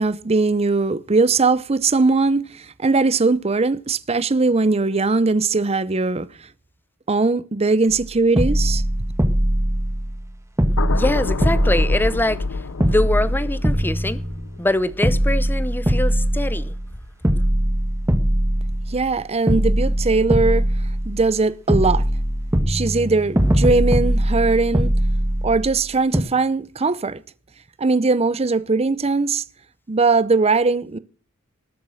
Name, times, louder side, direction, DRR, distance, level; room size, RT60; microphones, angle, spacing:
voice 1, 0.0-6.3 7.1-8.8 18.9-20.7 21.1-22.0 22.7-24.9 25.4-27.2 27.8-29.4 29.9-31.0, right 3 dB, 30° right, 0.6 m, -20 dB
sound 1, 7.9-8.0 8.4-10.3 10.6-12.5 12.8-14.7 15.0-16.9 17.2-19.1 19.5-21.4 21.7-25.8 26.1-26.2, equal, 15° right, 1.5 m, -21 dB
sound 2, 10.8-17.1 17.4-17.7, left 3 dB, 75° left, 0.8 m, -29 dB
voice 2, 10.9-14.2 14.6-16.7, left 1 dB, 10° left, 0.7 m, -23 dB
19.5 x 7.3 x 6.3 m
head